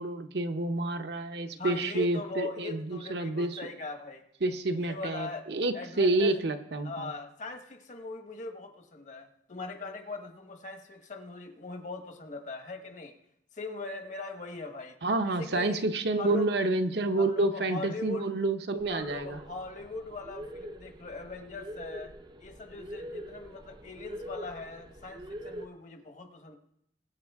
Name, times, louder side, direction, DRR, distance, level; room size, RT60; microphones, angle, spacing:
voice 1, 0.0-3.6 4.4-7.1 15.0-19.4, right 2 dB, 65° right, 7 dB, 0.9 m, -29 dB
voice 2, 1.5-4.2 4.8-5.5 5.7-6.4 6.8-13.1 13.5-15.0 15.3-15.8 16.2-16.5 17.2-18.3 18.9-22.1 22.4-26.6, left 3 dB, 45° left, 6 dB, 1.2 m, -40 dB
sound 1, 18.8-25.7, equal, 25° right, 0.6 m, -43 dB
22.0 x 7.7 x 3.6 m, 0.76 s
head